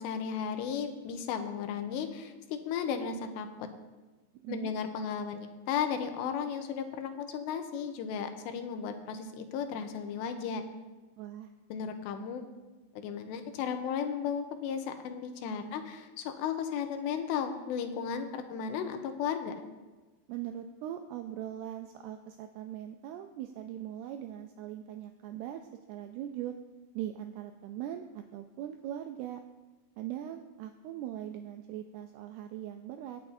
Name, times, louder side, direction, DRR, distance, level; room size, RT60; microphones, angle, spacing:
voice 1, 0.0-3.5 4.5-10.6 11.7-12.4 13.0-19.5, left 7 dB, 85° left, 6 dB, 2.9 m, -35 dB
voice 2, 4.3-4.7 11.2-11.5 20.3-26.5 27.0-29.4 30.0-33.2, right 11 dB, 90° right, 6 dB, 2.3 m, -40 dB
18.0 x 9.4 x 2.7 m, 1.2 s
omnidirectional pair, 5.2 m